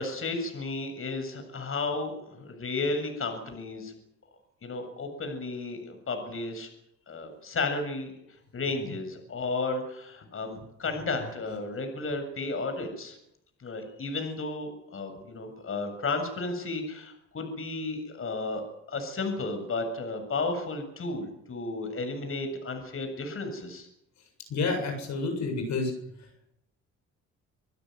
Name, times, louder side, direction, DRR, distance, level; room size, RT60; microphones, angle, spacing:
voice 1, 0.0-3.9 4.6-6.7 7.1-8.1 8.5-13.2 13.6-18.6 18.9-23.9, left 3 dB, 45° left, 6 dB, 7.8 m, -33 dB
voice 2, 24.5-25.9 26.2-26.3, left 3 dB, 65° left, 4 dB, 7.8 m, -29 dB
27.5 x 16.5 x 9.6 m, 0.77 s
cardioid pair, 90°, 30 cm